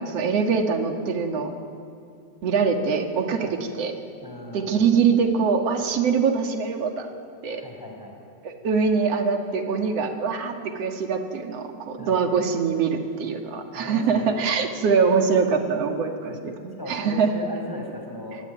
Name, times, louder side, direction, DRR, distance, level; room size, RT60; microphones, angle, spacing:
voice 1, 0.1-1.5 2.4-3.9 4.5-7.1 7.4-7.6 8.4-16.3 16.6-17.3, right 5 dB, 45° right, 4 dB, 2.6 m, -23 dB
voice 2, 4.2-4.9 7.5-8.2 12.0-12.2 13.7-14.5 16.3-16.4 16.8-18.4, left 1 dB, 5° left, 2 dB, 4.6 m, -37 dB
28.0 x 23.0 x 9.2 m, 2.4 s
omnidirectional pair, 4.5 m